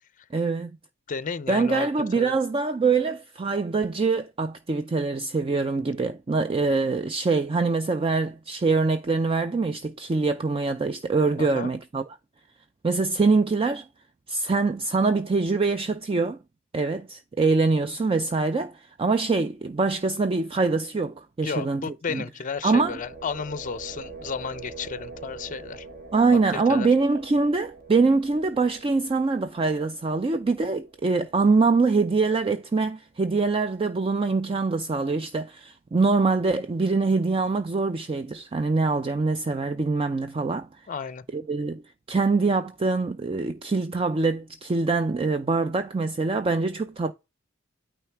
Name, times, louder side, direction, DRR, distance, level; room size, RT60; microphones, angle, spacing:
voice 1, 0.3-0.8 1.5-12.0 12.8-13.9 14.3-16.4 16.7-22.2 22.6-23.0 26.1-40.7 41.3-47.1, right 3 dB, 25° right, 0.4 m, -24 dB
voice 2, 1.1-1.9 2.2-2.3 11.4-11.7 21.4-25.9 26.5-26.9 40.9-41.2, left 5 dB, 40° left, 0.5 m, -33 dB
sound 1, 22.4-32.3, right 3 dB, 45° right, 1.3 m, -45 dB
9.1 x 3.2 x 4.5 m
head